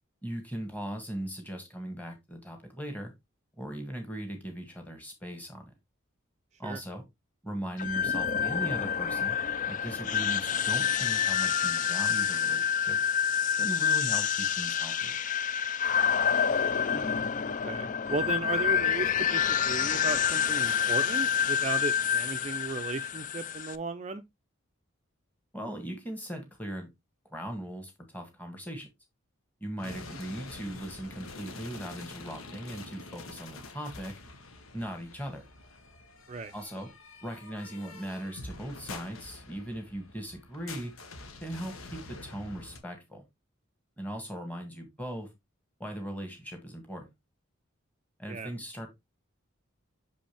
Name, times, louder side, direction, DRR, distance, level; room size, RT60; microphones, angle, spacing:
voice 1, 0.2-3.1 3.6-5.7 6.6-7.0 7.4-9.4 9.7-13.0 13.6-15.2 25.5-26.9 27.3-28.9 29.6-34.1 34.7-35.4 36.5-36.9 37.2-40.9 41.4-43.2 44.0-45.3 45.8-47.1 48.2-48.9, right 1 dB, 10° left, 1.8 m, -39 dB
sound 1, 7.8-23.8, left 7 dB, 40° left, 0.3 m, -28 dB
voice 2, 16.8-17.2 17.6-24.2 29.8-30.2 36.3-36.5 48.3-48.5, right 3 dB, 35° right, 0.4 m, -36 dB
sound 2, 29.8-42.8, left 3 dB, 90° left, 1.4 m, -46 dB
6.3 x 5.2 x 3.3 m
head